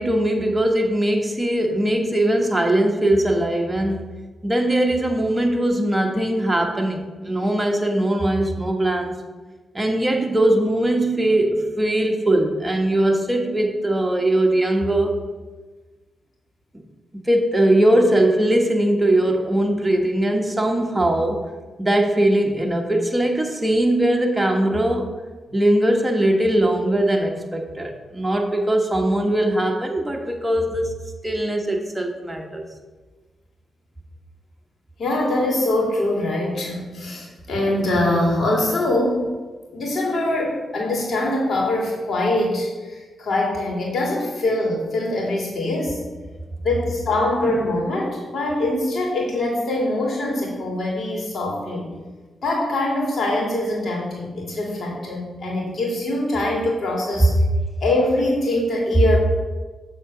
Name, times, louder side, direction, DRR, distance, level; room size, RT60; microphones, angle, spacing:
voice 1, 0.0-4.1 4.4-9.2 9.7-15.1 17.1-21.4 21.8-25.1 25.5-30.9 31.2-32.7 47.5-47.6, right 1 dB, 15° right, 2 dB, 1.3 m, -20 dB
voice 2, 35.0-39.3 39.7-46.0 46.6-51.9 52.4-57.3 57.8-59.2, left 1 dB, 65° left, -2 dB, 2.5 m, -23 dB
7.4 x 3.8 x 5.9 m, 1.3 s
supercardioid pair, 45°, 0 cm